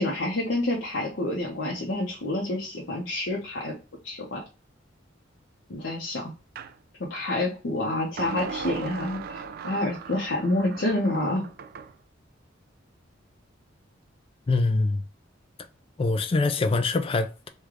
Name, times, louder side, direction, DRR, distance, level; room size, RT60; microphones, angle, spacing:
voice 1, 0.0-3.7 4.0-4.4 5.7-6.3 7.0-11.5, left 1 dB, 70° left, 0.7 m, -28 dB
sound 1, 6.6-6.8 8.2-11.9, right 5 dB, 55° right, 0.3 m, -38 dB
voice 2, 14.5-15.0 16.0-17.5, left 3 dB, 30° left, 0.3 m, -24 dB
3.2 x 2.3 x 3.5 m
head